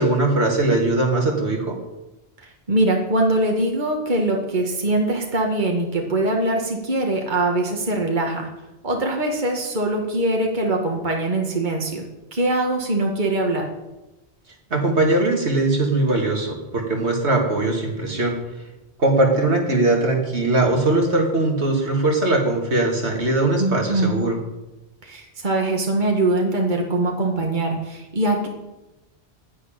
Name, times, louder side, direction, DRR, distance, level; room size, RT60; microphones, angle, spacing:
voice 1, 0.0-1.8 14.7-18.4 19.0-24.4, right 2 dB, 75° right, 1 dB, 2.8 m, -20 dB
voice 2, 2.7-8.5 8.8-12.0 12.3-13.7 23.6-24.2 25.0-28.5, right 2 dB, 45° right, 1 dB, 2.1 m, -22 dB
11.5 x 10.5 x 9.0 m, 1.0 s
omnidirectional pair, 1.1 m